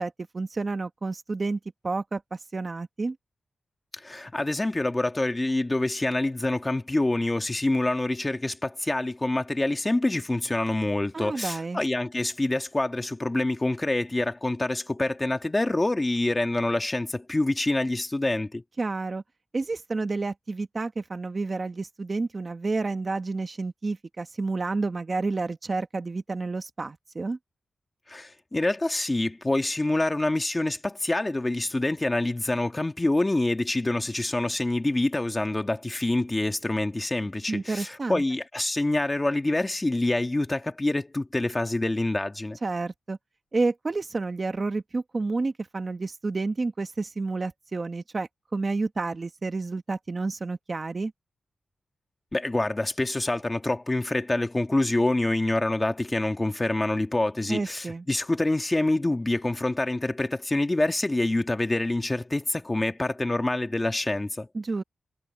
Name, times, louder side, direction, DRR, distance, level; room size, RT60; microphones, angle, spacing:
voice 1, 0.0-1.6 1.8-3.2 11.1-11.8 18.8-19.2 19.5-27.4 37.5-38.2 42.6-43.2 43.5-51.1 57.5-58.0 64.5-64.8, right 3 dB, 35° right, 1.3 m, -30 dB
voice 2, 3.9-18.6 28.1-42.6 52.3-64.5, left 2 dB, 20° left, 1.9 m, -26 dB
wide cardioid pair, 130°, 0 cm